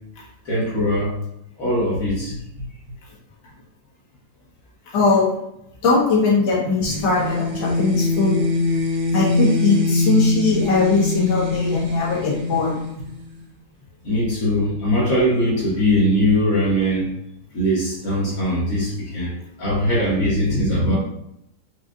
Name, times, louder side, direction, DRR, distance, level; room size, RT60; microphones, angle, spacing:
voice 1, 0.5-1.2 1.6-2.7 14.0-17.1 17.5-19.3 19.6-21.0, equal, 50° left, -7 dB, 1.7 m, -21 dB
voice 2, 4.9-5.3 5.8-8.4 9.1-12.8, left 3 dB, 80° left, -4 dB, 1.8 m, -20 dB
sound 1, 6.8-13.5, left 3 dB, 75° right, 0.8 m, -23 dB
5.0 x 2.5 x 2.4 m, 0.80 s
omnidirectional pair, 2.1 m